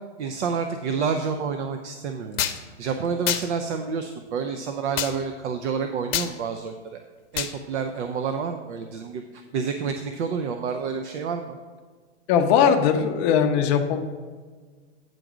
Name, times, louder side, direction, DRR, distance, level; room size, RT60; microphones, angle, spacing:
voice 1, 0.2-2.5 2.8-7.0 7.3-11.6, right 5 dB, 70° right, 6 dB, 0.7 m, -29 dB
whip slap belt punch, 2.4-2.6 3.3-3.5 5.0-5.1 6.1-6.3 7.4-7.5, left 11 dB, 55° left, 0.8 m, -25 dB
voice 2, 12.3-14.0, left 7 dB, 25° left, 5 dB, 0.5 m, -19 dB
9.1 x 3.9 x 6.0 m, 1.5 s
hypercardioid pair, 150°, 36 cm